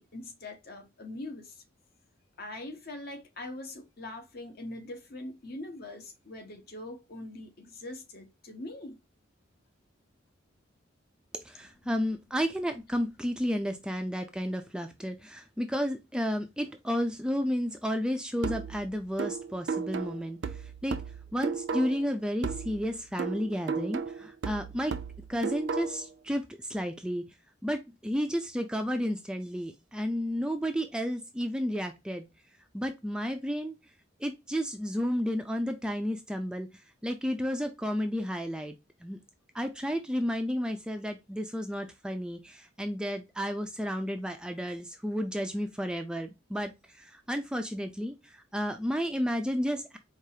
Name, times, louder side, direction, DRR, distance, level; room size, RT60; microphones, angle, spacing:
voice 1, 0.0-1.6 2.4-9.0 11.5-11.9, left 2 dB, 50° left, 0.9 m, -42 dB
voice 2, 11.3-20.4 20.8-21.0 21.3-25.0 25.3-26.4 26.7-27.2 27.6-32.2 32.7-33.7 34.2-36.7 37.0-38.8 39.0-39.2 39.5-50.0, equal, 5° right, 0.3 m, -32 dB
sound 1, 18.4-22.1 22.4-26.1, right 5 dB, 65° right, 0.4 m, -35 dB
4.7 x 2.4 x 2.7 m
head